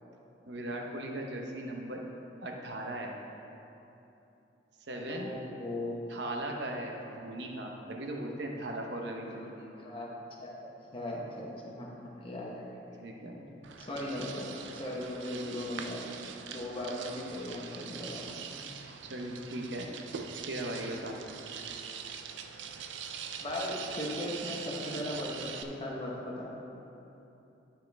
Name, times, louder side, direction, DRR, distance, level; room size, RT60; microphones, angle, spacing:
voice 1, 0.5-2.0 2.4-3.1 4.9-5.4 6.1-9.5 13.0-13.4 19.0-19.9 20.5-21.2, right 1 dB, 70° right, 1 dB, 1.0 m, -38 dB
voice 2, 5.0-6.2 9.4-9.5 9.8-10.1 10.4-12.7 13.8-16.0 16.5-18.6 23.4-26.5, left 1 dB, 30° left, -4 dB, 1.1 m, -38 dB
sound 1, 13.6-25.6, right 7 dB, 85° right, 0.5 m, -43 dB
11.5 x 5.8 x 3.4 m, 2.9 s
head